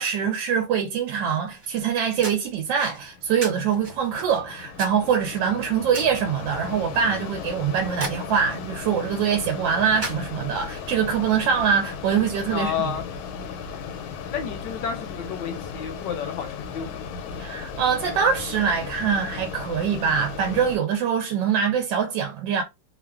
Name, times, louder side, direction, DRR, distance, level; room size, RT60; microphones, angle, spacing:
voice 1, 0.0-12.7 17.4-22.6, right 7 dB, 75° right, 1.2 m, -24 dB
sound 1, 1.4-10.7, right 3 dB, 45° right, 0.8 m, -40 dB
Mechanisms, 2.8-20.8, left 6 dB, 90° left, 1.4 m, -36 dB
voice 2, 12.5-13.1 14.3-17.0, left 7 dB, 75° left, 1.2 m, -31 dB
3.1 x 2.3 x 2.3 m
omnidirectional pair, 2.1 m